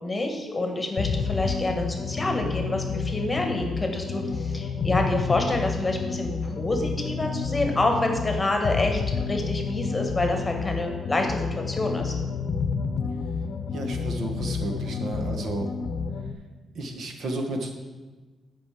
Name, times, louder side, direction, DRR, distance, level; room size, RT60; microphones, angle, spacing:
voice 1, 0.0-12.1, left 2 dB, 15° left, 3 dB, 1.4 m, -27 dB
sound 1, 1.0-16.3, left 5 dB, 60° left, 0.8 m, -30 dB
voice 2, 13.7-15.7 16.7-17.7, right 2 dB, 60° right, 4 dB, 1.4 m, -32 dB
11.0 x 5.3 x 7.4 m, 1.3 s
wide cardioid pair, 150°, 0 cm